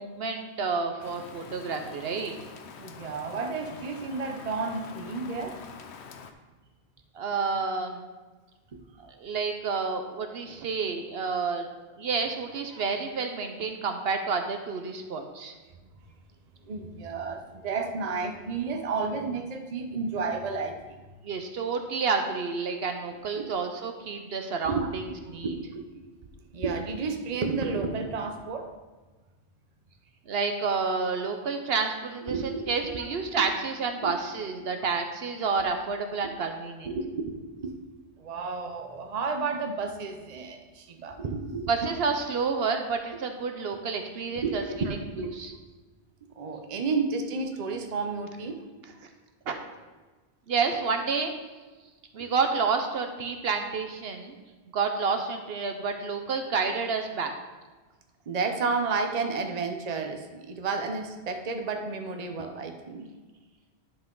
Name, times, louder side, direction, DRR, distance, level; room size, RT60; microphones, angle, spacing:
voice 1, 0.0-2.3 7.1-8.1 9.0-11.7 12.0-15.5 21.2-25.0 25.3-25.5 30.3-36.9 41.7-44.6 45.3-45.5 49.5-49.6 50.5-51.3 52.1-54.3 54.7-57.3, right 5 dB, 65° right, 5 dB, 0.9 m, -29 dB
Rain, 1.0-6.3, left 6 dB, 80° left, 1.0 m, -45 dB
voice 2, 2.8-5.6 8.7-8.8 16.7-21.0 23.4-23.5 24.6-24.9 25.4-26.1 26.5-28.7 32.3-33.1 34.0-34.1 36.8-37.8 38.2-41.9 44.4-45.3 46.4-48.6 58.3-63.1, right 4 dB, 40° right, 5 dB, 0.8 m, -31 dB
10.5 x 5.6 x 3.9 m, 1.3 s
omnidirectional pair, 1.1 m